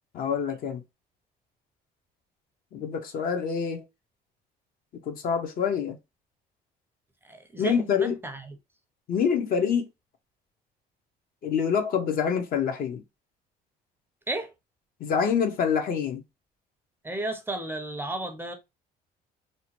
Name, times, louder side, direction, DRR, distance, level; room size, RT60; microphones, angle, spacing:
voice 1, 0.1-0.8 2.7-3.8 5.1-6.0 7.6-8.2 9.1-9.9 11.4-13.0 15.0-16.2, left 7 dB, 60° left, 0.6 m, -26 dB
voice 2, 7.2-8.6 14.3-14.5 17.0-18.5, right 2 dB, 15° right, 0.4 m, -33 dB
2.7 x 2.1 x 2.8 m
cardioid pair, 110°, 17 cm